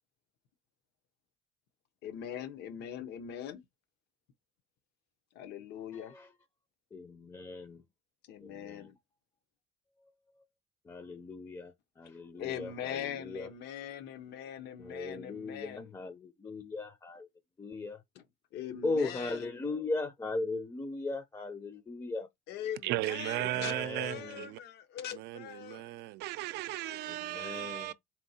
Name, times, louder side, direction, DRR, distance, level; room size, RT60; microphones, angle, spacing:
voice 1, 2.0-3.6 5.3-6.1 8.2-9.0 12.4-15.9 18.5-19.5 22.5-25.8 26.9-27.7, left 9 dB, 80° left, 0.8 m, -42 dB
voice 2, 5.9-6.3 6.9-7.8 8.4-8.9 10.0-10.4 10.8-13.5 14.8-17.3 17.6-18.0 18.8-22.3 23.4-24.5 27.1-27.9, left 3 dB, 20° left, 0.5 m, -38 dB
voice 3, 22.8-24.6 25.1-27.9, right 15 dB, 80° right, 0.4 m, -36 dB
4.4 x 3.5 x 2.7 m
cardioid pair, 110°, 17 cm